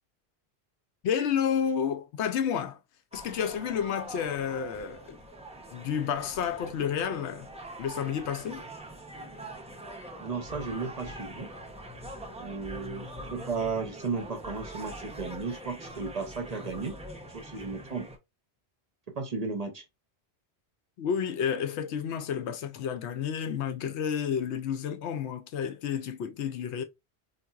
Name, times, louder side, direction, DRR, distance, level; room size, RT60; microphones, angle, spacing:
voice 1, 1.0-2.8 3.1-5.2 5.7-7.5 7.8-8.7 21.0-26.8, left 8 dB, 85° left, 0.9 m, -30 dB
sound 1, 3.1-18.2, right 1 dB, 10° right, 0.4 m, -43 dB
voice 2, 10.2-11.5 12.4-17.0 17.3-18.1 19.1-19.8, right 4 dB, 45° right, 0.6 m, -34 dB
4.1 x 2.3 x 2.3 m
omnidirectional pair, 1.1 m